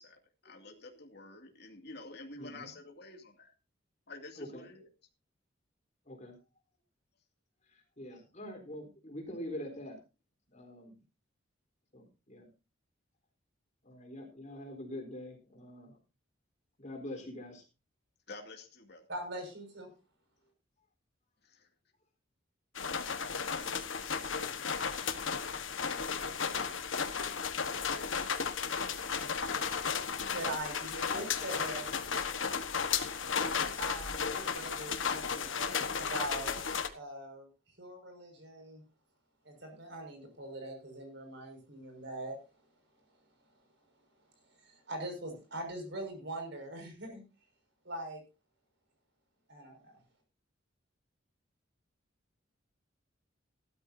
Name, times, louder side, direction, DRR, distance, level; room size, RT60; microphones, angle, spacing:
voice 1, 0.0-3.5 4.1-4.8 18.3-19.0 21.4-21.7, left 2 dB, 60° left, 3 dB, 2.4 m, -49 dB
voice 2, 2.4-2.7 4.4-4.7 6.1-6.4 7.7-10.0 10.5-11.0 11.9-12.5 13.8-16.0 16.8-17.6, left 1 dB, 40° left, 2 dB, 4.0 m, -44 dB
voice 3, 19.1-19.9 30.3-31.9 33.8-36.6 36.9-38.8 39.4-42.4 44.4-47.2 47.8-48.2 49.5-50.0, right 1 dB, 60° right, 4 dB, 5.9 m, -42 dB
sound 1, 22.7-36.9, left 6 dB, 80° left, 1.4 m, -34 dB
17.0 x 12.5 x 2.8 m, 0.30 s
head